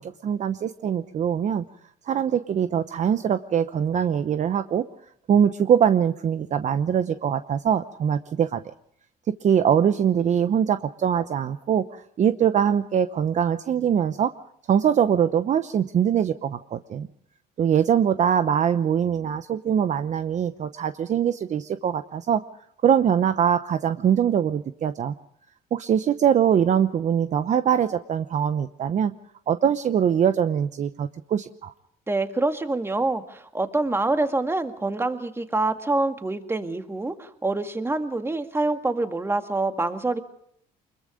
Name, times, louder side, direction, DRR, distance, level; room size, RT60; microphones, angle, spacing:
voice 1, 0.0-1.6 2.0-4.9 5.3-8.6 9.3-14.3 14.7-17.1 17.6-22.4 22.8-25.1 25.7-29.1 29.5-31.7, right 8 dB, 45° right, 11 dB, 0.9 m, -22 dB
voice 2, 32.1-40.2, right 2 dB, 15° right, 7 dB, 2.0 m, -26 dB
25.0 x 22.0 x 5.1 m, 0.69 s
cardioid pair, 110°, 17 cm